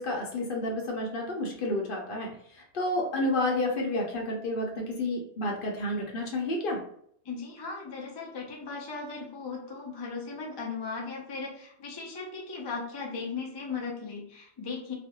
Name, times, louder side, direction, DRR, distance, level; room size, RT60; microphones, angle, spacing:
voice 1, 0.0-2.3 2.5-6.8, left 1 dB, 55° left, 0 dB, 0.7 m, -30 dB
voice 2, 7.2-14.9, left 4 dB, 40° left, -1 dB, 0.3 m, -37 dB
2.4 x 2.1 x 2.7 m, 0.66 s
omnidirectional pair, 1.2 m